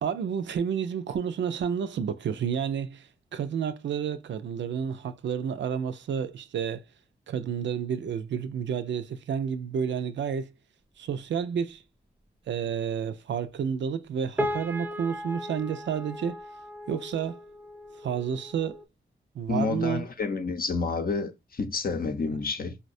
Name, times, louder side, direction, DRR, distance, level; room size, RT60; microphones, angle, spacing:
voice 1, 0.0-6.8 7.3-10.5 11.0-11.8 12.5-16.4 16.9-17.4 18.0-18.8 19.3-20.1, right 7 dB, 75° right, 0.4 m, -30 dB
sound 1, 14.4-18.9, equal, 10° right, 0.4 m, -36 dB
voice 2, 19.5-22.8, left 4 dB, 50° left, 0.6 m, -29 dB
4.0 x 2.1 x 2.5 m
cardioid pair, 50°, 19 cm